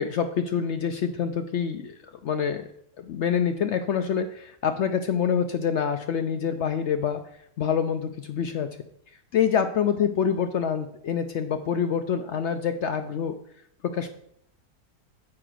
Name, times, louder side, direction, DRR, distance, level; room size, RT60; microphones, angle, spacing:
voice 1, 0.0-2.7 3.0-7.2 7.6-8.7 9.3-13.4 13.8-14.1, left 7 dB, 70° left, 8 dB, 0.7 m, -26 dB
7.4 x 5.0 x 6.1 m, 0.69 s
omnidirectional pair, 1.6 m